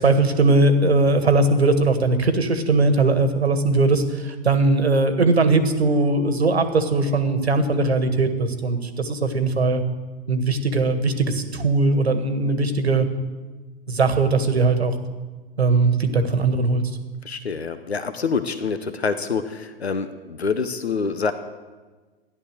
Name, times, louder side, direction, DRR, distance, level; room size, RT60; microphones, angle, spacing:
voice 1, 0.0-9.8 10.3-13.1 13.9-14.9 15.6-16.8, right 3 dB, 85° right, 9 dB, 1.7 m, -20 dB
voice 2, 17.2-21.3, left 5 dB, 90° left, 11 dB, 0.9 m, -26 dB
14.5 x 11.0 x 6.6 m, 1.3 s
figure-of-eight pair, 105°, 31 cm